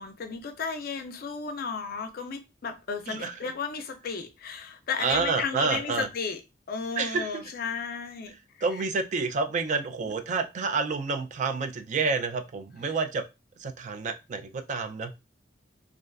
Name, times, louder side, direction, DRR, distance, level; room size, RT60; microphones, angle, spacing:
voice 1, 0.0-6.4 6.7-8.3 10.0-10.1 12.9-13.0, left 5 dB, 50° left, 0.4 m, -34 dB
voice 2, 3.1-3.5 5.0-6.1 7.0-7.4 8.6-13.3 13.6-15.1, right 4 dB, 40° right, 0.3 m, -29 dB
2.3 x 2.3 x 2.2 m
head